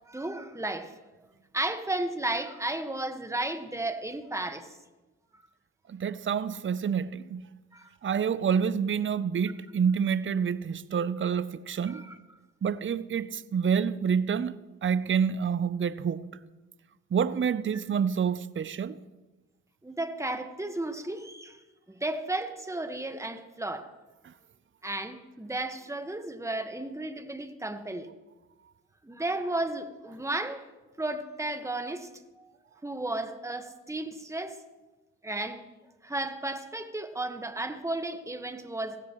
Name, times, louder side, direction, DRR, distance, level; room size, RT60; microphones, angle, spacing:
voice 1, 0.1-0.9 1.5-4.7 7.7-7.9 11.8-12.2 19.8-21.6 21.9-23.9 24.8-28.1 29.0-30.7 31.0-32.1 32.4-32.5 32.8-34.6 35.2-35.6 36.0-39.0, right 2 dB, 10° right, 1.5 m, -33 dB
voice 2, 5.9-7.4 8.0-12.0 12.6-14.6 14.8-16.3 17.1-19.0, right 7 dB, 35° right, 0.7 m, -28 dB
17.0 x 16.0 x 3.1 m
supercardioid pair, 45°, 36 cm